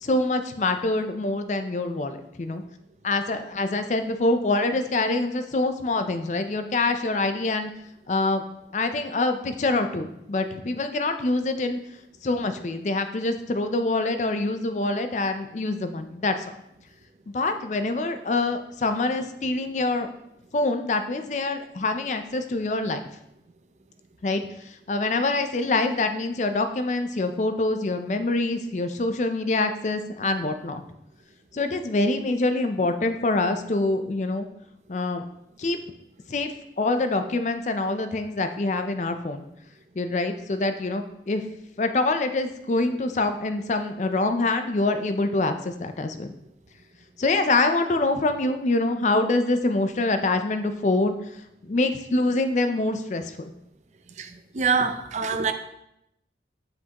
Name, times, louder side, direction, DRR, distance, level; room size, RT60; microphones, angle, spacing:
voice 1, 0.0-2.6 3.0-7.7 8.1-8.4 8.7-11.8 12.2-16.5 17.3-20.1 20.5-23.0 24.2-30.8 31.5-34.5 34.9-35.2 35.6-35.8 36.3-39.5 40.0-41.4 41.8-46.3 47.2-51.2 51.6-53.4, left 2 dB, 40° left, 8 dB, 0.4 m, -25 dB
voice 2, 54.5-55.5, right 5 dB, 40° right, 8 dB, 0.4 m, -24 dB
7.3 x 6.1 x 2.9 m, 0.82 s
head